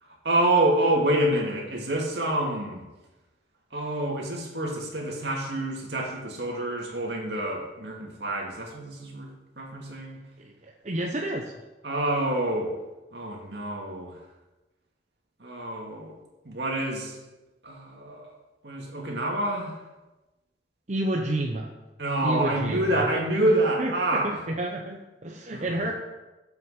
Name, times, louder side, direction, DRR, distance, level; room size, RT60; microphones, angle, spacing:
voice 1, 0.0-2.8 3.7-9.3 9.6-10.2 11.8-12.7 13.1-14.2 15.4-16.1 16.4-17.2 17.6-18.3 18.6-19.8 22.0-24.4 25.5-25.9, right 1 dB, 70° right, -1 dB, 2.4 m, -27 dB
voice 2, 10.4-11.5 20.9-21.7 22.2-23.5 23.8-25.9, right 1 dB, 40° right, 1 dB, 0.8 m, -30 dB
7.6 x 6.2 x 7.6 m, 1.1 s
head